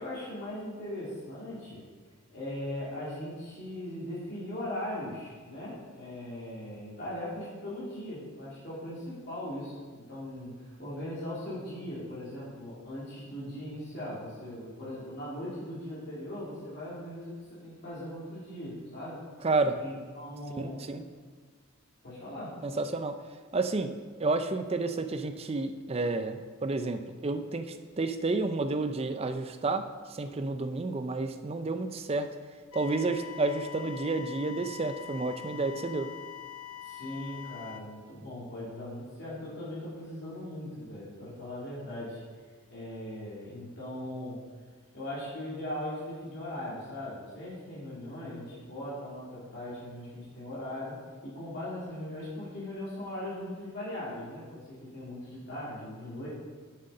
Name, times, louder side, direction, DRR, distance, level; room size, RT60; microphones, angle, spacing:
voice 1, 0.0-1.8 2.3-19.2 19.8-20.8 22.0-22.5 36.8-42.2 42.7-44.4 44.9-51.0 51.2-56.3, left 1 dB, 50° left, -8 dB, 2.7 m, -39 dB
voice 2, 19.4-19.8 20.6-21.0 22.6-23.2 23.5-23.9 24.2-29.8 30.1-32.3 32.7-36.1, right 3 dB, 30° right, 8 dB, 0.5 m, -30 dB
sound 1, 32.7-37.8, left 11 dB, 85° left, 0.6 m, -44 dB
7.6 x 6.6 x 5.4 m, 1.5 s
head